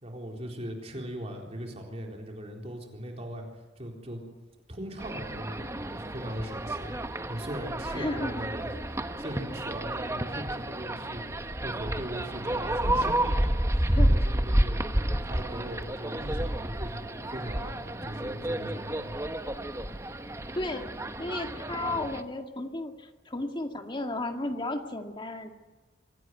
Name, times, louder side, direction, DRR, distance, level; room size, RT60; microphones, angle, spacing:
voice 1, 0.0-3.5 3.8-4.2 4.7-11.2 11.6-19.1, equal, 35° right, 1 dB, 4.0 m, -39 dB
sound 1, 5.0-22.2, right 1 dB, 15° right, 1.1 m, -30 dB
voice 2, 7.9-8.4 13.9-14.1 20.5-20.9 21.2-25.5, left 2 dB, 25° left, 5 dB, 2.1 m, -33 dB
25.5 x 17.5 x 9.3 m, 1.2 s
head